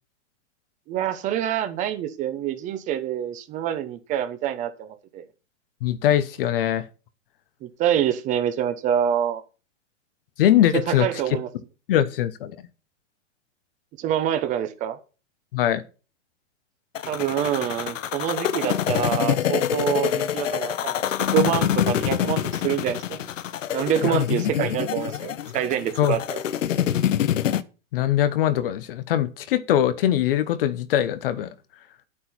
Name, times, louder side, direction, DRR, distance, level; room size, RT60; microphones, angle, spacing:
voice 1, 0.9-5.2 7.6-9.4 10.9-11.5 14.0-15.0 17.1-21.0 21.3-23.2 23.7-26.4, right 10 dB, 20° right, 1.0 m, -26 dB
voice 2, 5.8-6.8 10.4-11.1 11.9-12.5 15.5-15.8 24.0-24.2 26.0-26.2 27.9-31.5, left 11 dB, 50° left, 1.1 m, -22 dB
sound 1, 17.0-27.6, left 11 dB, 85° left, 1.1 m, -25 dB
10.0 x 8.6 x 4.4 m
hypercardioid pair, 160°, 37 cm